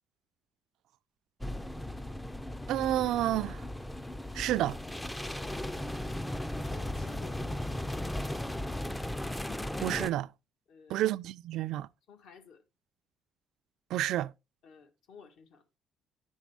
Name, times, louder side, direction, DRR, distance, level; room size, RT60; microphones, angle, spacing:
sound 1, 1.4-10.1, left 1 dB, 5° left, 0.4 m, -36 dB
voice 1, 2.7-3.6 4.3-4.8 9.8-10.3 10.9-11.9 13.9-14.3, right 14 dB, 80° right, 0.3 m, -30 dB
voice 2, 5.3-6.2 6.5-8.5 10.7-11.1 12.1-12.6 14.6-15.6, left 5 dB, 70° left, 1.4 m, -54 dB
10.0 x 6.2 x 3.4 m
cardioid pair, 140°, 0 cm